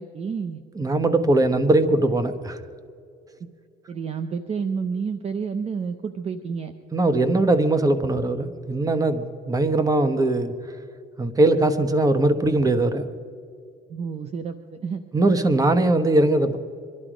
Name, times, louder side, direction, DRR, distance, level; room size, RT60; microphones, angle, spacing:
voice 1, 0.0-0.6 3.9-6.7 13.9-15.0, right 5 dB, 35° right, 10 dB, 0.7 m, -30 dB
voice 2, 0.8-2.6 6.9-10.5 11.2-13.1 15.1-16.6, right 2 dB, 20° right, 11 dB, 1.1 m, -20 dB
23.5 x 12.0 x 5.1 m, 2.4 s
cardioid pair, 110°, 17 cm